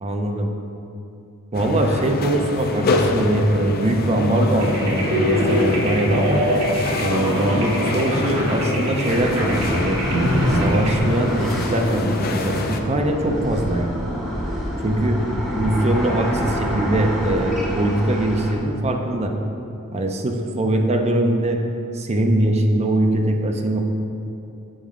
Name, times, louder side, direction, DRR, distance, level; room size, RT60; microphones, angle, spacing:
voice 1, 0.0-0.5 1.5-6.4 7.0-10.0 10.5-14.1 14.8-15.2 15.6-19.3 19.9-21.6 21.9-23.8, right 1 dB, 30° right, 3 dB, 0.5 m, -22 dB
sound 1, 1.5-12.8, left 3 dB, 45° left, 0.4 m, -26 dB
sound 2, 4.6-11.0, equal, 75° right, 1.4 m, -23 dB
sound 3, 9.0-18.5, equal, ahead, 0.9 m, -28 dB
7.2 x 4.7 x 3.6 m, 2.8 s
head